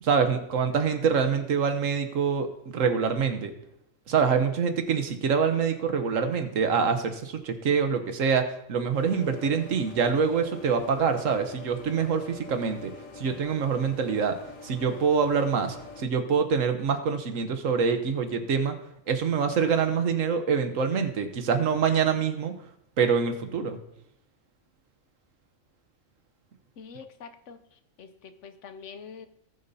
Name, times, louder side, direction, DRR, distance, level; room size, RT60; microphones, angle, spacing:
voice 1, 0.0-3.5 4.1-12.9 13.2-14.3 14.6-18.7 19.1-22.5 23.0-23.8, right 6 dB, 80° right, 7 dB, 1.4 m, -25 dB
sound 1, 8.9-16.0, left 4 dB, 85° left, 1.6 m, -45 dB
voice 2, 26.8-29.3, left 6 dB, 70° left, 10 dB, 1.0 m, -45 dB
19.0 x 6.7 x 2.7 m, 0.80 s
omnidirectional pair, 1.3 m